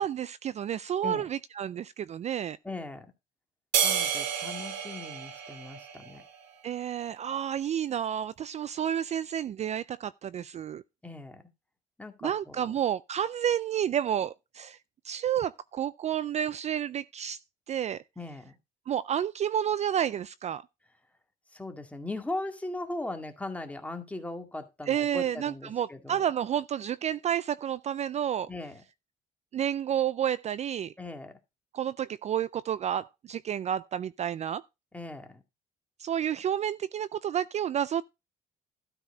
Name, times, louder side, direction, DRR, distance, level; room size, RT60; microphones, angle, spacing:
voice 1, 0.0-2.6 6.6-10.8 12.2-14.8 15.0-17.4 17.7-18.0 18.9-20.6 24.9-28.5 29.5-30.9 31.7-34.6 36.0-38.0, right 9 dB, 40° right, 0.4 m, -30 dB
voice 2, 2.6-3.1 3.8-6.2 11.0-11.4 12.0-12.7 18.2-18.5 21.5-26.2 28.5-28.8 31.0-31.4 34.9-35.4, left 2 dB, 10° left, 2.1 m, -39 dB
sound 1, 3.7-6.3, right 8 dB, 85° right, 2.4 m, -30 dB
12.5 x 4.6 x 4.9 m
cardioid pair, 110°, 17 cm